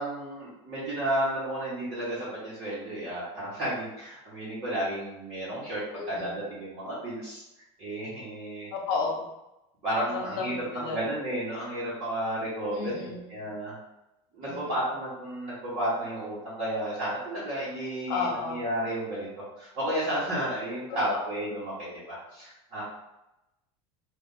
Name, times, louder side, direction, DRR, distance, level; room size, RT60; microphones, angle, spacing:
voice 1, 0.0-7.4 7.8-8.7 9.8-13.8 14.3-22.8, right 1 dB, 35° right, -12 dB, 1.5 m, -32 dB
voice 2, 6.0-6.4 8.7-9.2 10.1-11.0 12.7-13.2 14.5-14.8 18.1-18.6 21.0-21.2, left 4 dB, 60° left, 0 dB, 1.1 m, -32 dB
3.4 x 2.8 x 4.0 m, 0.92 s
cardioid pair, 170°, 14 cm